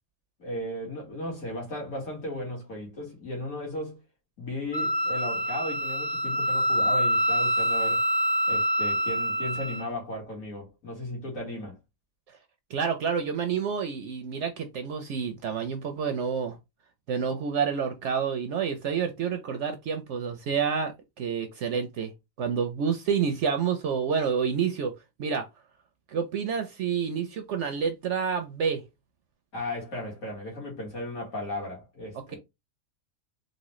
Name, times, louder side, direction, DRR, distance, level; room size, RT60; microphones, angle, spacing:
voice 1, 0.4-4.0 4.4-8.0 8.5-11.8 29.5-32.4, left 1 dB, 65° left, 2.0 m, -35 dB
Wind instrument woodwind instrument, 4.7-9.9, equal, 20° left, 0.8 m, -26 dB
voice 2, 12.7-16.6 17.1-22.1 22.4-24.9 25.2-25.5 26.1-28.8 32.1-32.4, right 6 dB, 65° right, 0.8 m, -28 dB
4.1 x 2.1 x 3.0 m
omnidirectional pair, 1.5 m